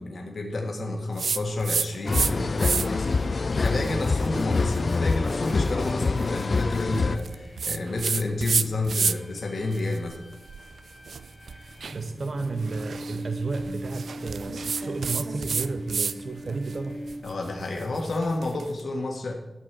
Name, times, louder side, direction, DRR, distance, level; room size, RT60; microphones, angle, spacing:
voice 1, 0.0-3.1 3.5-10.2 17.2-19.3, left 2 dB, 70° left, 1 dB, 1.7 m, -30 dB
sound 1, 1.2-2.3 2.6-3.1 3.6-9.4 9.7-16.2 16.5-18.7, right 5 dB, 90° right, 0.4 m, -31 dB
sound 2, 2.0-7.2, left 4 dB, 50° left, 0.3 m, -25 dB
sound 3, 6.6-17.7, equal, 30° left, 1.2 m, -41 dB
voice 2, 11.5-17.0, right 3 dB, 55° right, 7 dB, 0.7 m, -32 dB
12.5 x 5.4 x 8.2 m, 1.0 s
wide cardioid pair, 115°, 0 cm